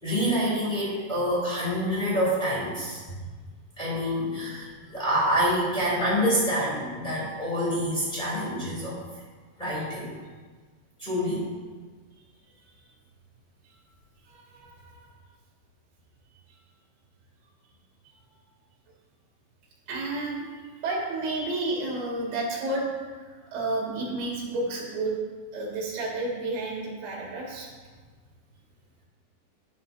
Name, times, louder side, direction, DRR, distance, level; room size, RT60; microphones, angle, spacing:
voice 1, 0.0-3.0 3.8-9.0 9.6-10.1 11.0-11.5, equal, 15° left, -8 dB, 2.8 m, -27 dB
voice 2, 14.3-15.1 19.9-22.8 23.1-25.2 25.5-27.7, right 2 dB, 80° right, -4 dB, 4.0 m, -31 dB
11.0 x 10.5 x 2.7 m, 1.4 s
omnidirectional pair, 4.4 m